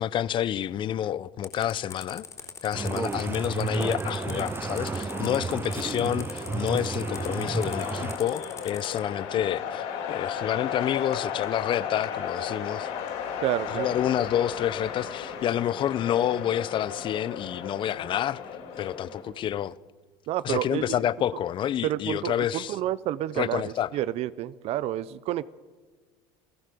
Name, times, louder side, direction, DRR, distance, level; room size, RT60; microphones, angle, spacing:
voice 1, 0.0-2.3 2.6-12.9 13.7-18.4 18.8-19.7 20.4-22.8 23.4-23.9, left 11 dB, 40° left, 0.7 m, -28 dB
sound 1, 1.4-9.0, left 6 dB, 25° left, 3.7 m, -42 dB
sound 2, 2.7-8.2, right 4 dB, 15° right, 0.6 m, -32 dB
sound 3, 4.1-19.2, left 7 dB, 75° left, 6.9 m, -35 dB
voice 2, 13.4-13.9 20.3-20.9 21.8-25.4, right 13 dB, 55° right, 0.7 m, -29 dB
28.0 x 17.0 x 6.9 m
supercardioid pair, 120°, 12 cm